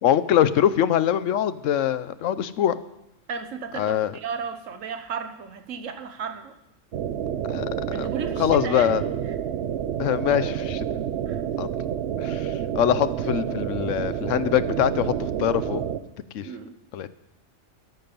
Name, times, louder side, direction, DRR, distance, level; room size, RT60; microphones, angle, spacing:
voice 1, 0.0-2.8 3.7-4.2 7.5-8.1 8.4-9.0 10.0-10.9 11.6-11.7 12.2-15.8 16.3-16.5 16.9-17.1, left 10 dB, 80° left, 15 dB, 1.0 m, -23 dB
voice 2, 3.3-6.5 7.9-8.9 11.3-11.4 16.4-16.8, right 6 dB, 85° right, 8 dB, 1.4 m, -34 dB
sound 1, 6.9-16.0, right 9 dB, 60° right, 0.9 m, -29 dB
13.0 x 11.0 x 5.3 m, 0.87 s
omnidirectional pair, 1.3 m